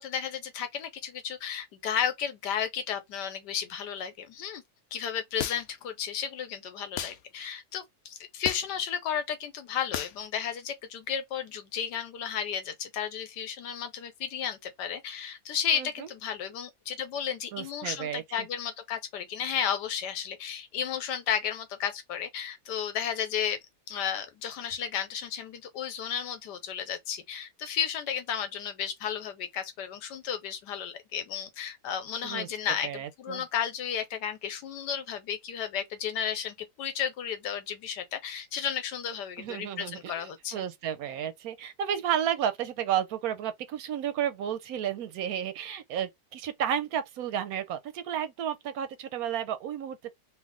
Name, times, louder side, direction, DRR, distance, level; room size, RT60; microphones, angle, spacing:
voice 1, 0.0-4.6 4.9-23.6 23.9-40.6, left 8 dB, 90° left, 1.4 m, -33 dB
sound 1, 5.4-5.8 7.0-7.2 8.4-8.8 9.9-10.2, left 9 dB, 70° left, 1.0 m, -33 dB
voice 2, 15.7-16.1 17.5-18.5 32.2-32.5 32.8-33.4 39.4-50.1, right 9 dB, 70° right, 0.9 m, -32 dB
3.3 x 2.4 x 3.6 m
omnidirectional pair, 1.8 m